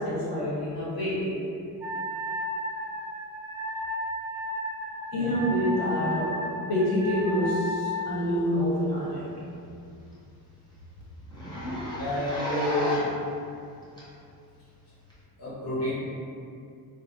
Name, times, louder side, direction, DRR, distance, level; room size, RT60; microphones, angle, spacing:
voice 1, 0.0-1.4 5.1-9.3, equal, 60° left, -7 dB, 1.0 m, -27 dB
Wind instrument woodwind instrument, 1.8-8.1, left 1 dB, 10° right, 0.3 m, -33 dB
Zipper (clothing), 8.6-8.8 9.2-9.3 9.6-9.7 10.1-10.2 10.4-10.6 11.3-13.2 14.0-14.1 15.1-15.2, left 1 dB, 10° left, 0.7 m, -32 dB
voice 2, 12.0-13.0 15.4-15.9, left 1 dB, 40° left, -10 dB, 0.8 m, -29 dB
4.6 x 2.2 x 2.8 m, 2.5 s
wide cardioid pair, 170°, 40 cm